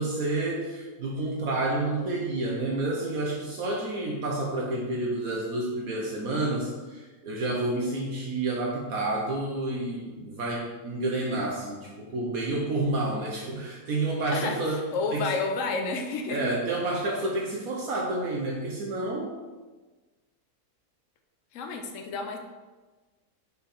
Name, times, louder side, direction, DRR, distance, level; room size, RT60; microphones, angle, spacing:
voice 1, 0.0-14.8 15.1-15.3 16.3-19.3, right 2 dB, 65° right, -2 dB, 1.3 m, -29 dB
voice 2, 14.3-16.4 21.5-22.4, left 4 dB, 60° left, 4 dB, 1.1 m, -30 dB
5.8 x 4.6 x 4.2 m, 1.3 s
omnidirectional pair, 1.7 m